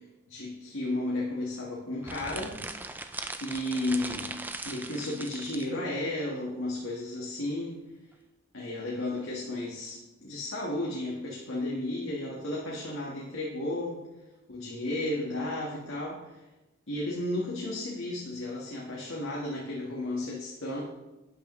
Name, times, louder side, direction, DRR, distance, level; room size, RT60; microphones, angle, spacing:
voice 1, 0.3-2.6 3.4-7.8 8.5-14.0 14.5-16.4 16.9-20.8, left 1 dB, 80° left, -3 dB, 1.6 m, -33 dB
sound 1, 2.0-5.7, right 2 dB, 10° right, 0.3 m, -39 dB
11.5 x 8.5 x 3.1 m, 1.0 s
head